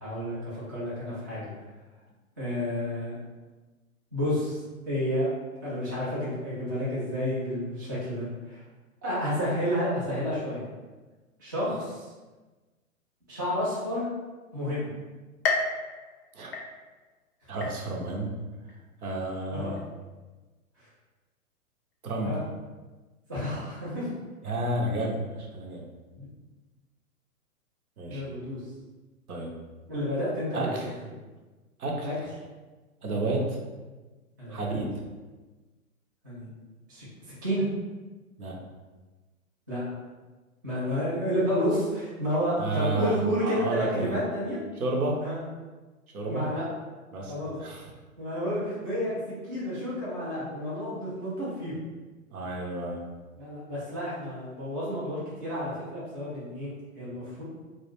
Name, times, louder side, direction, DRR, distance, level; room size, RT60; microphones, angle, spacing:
voice 1, 0.0-1.5 2.4-3.2 4.1-4.6 4.9-5.3 5.6-8.6 9.0-10.6 11.4-12.1 13.3-14.1 14.5-14.9 19.5-19.7 22.2-22.4 23.3-24.1 26.2-26.3 28.1-28.6 29.9-30.7 32.0-32.1 34.4-34.8 36.2-36.5 36.9-37.0 37.4-37.6 39.7-39.8 40.6-44.6 45.2-45.4 46.2-46.7 47.3-47.5 48.2-51.7 53.4-56.7 57.0-57.4, equal, 15° right, -10 dB, 0.3 m, -30 dB
sound 1, 15.4-17.1 17.6-18.2 18.7-18.8 19.8-19.9, left 3 dB, 45° left, 0.5 m, -32 dB
voice 2, 17.5-18.4 19.0-19.8 22.0-22.4 24.4-25.9 28.0-28.2 29.3-29.5 30.5-30.9 31.8-32.1 33.0-33.6 34.5-34.9 38.4-38.6 42.6-44.2 44.8-45.2 46.1-46.5 47.1-47.9 52.3-53.0, right 2 dB, 80° right, 0 dB, 0.7 m, -31 dB
2.3 x 2.1 x 3.0 m, 1.2 s
figure-of-eight pair, 120°, 43 cm